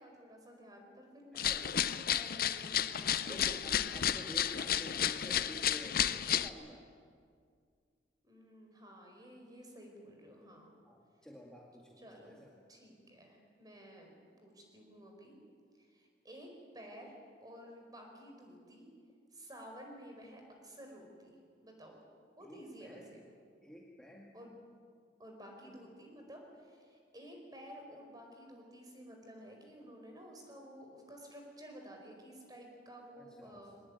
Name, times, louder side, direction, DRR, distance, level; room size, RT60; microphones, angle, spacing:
voice 1, 0.0-3.6 8.2-10.7 12.0-12.4 12.7-14.1 14.4-15.4 15.8-16.5 16.7-17.1 17.4-18.9 19.3-22.0 22.4-23.2 24.3-24.6 25.2-33.8, equal, 20° right, 1 dB, 5.1 m, -53 dB
sound 1, 1.4-6.5, left 10 dB, 55° left, 0.7 m, -32 dB
voice 2, 1.4-1.8 3.2-6.9 10.8-12.5 22.4-23.1 23.6-24.3 25.6-25.8 33.2-33.6, equal, 5° left, -2 dB, 2.1 m, -51 dB
22.5 x 19.5 x 9.7 m, 2.1 s
head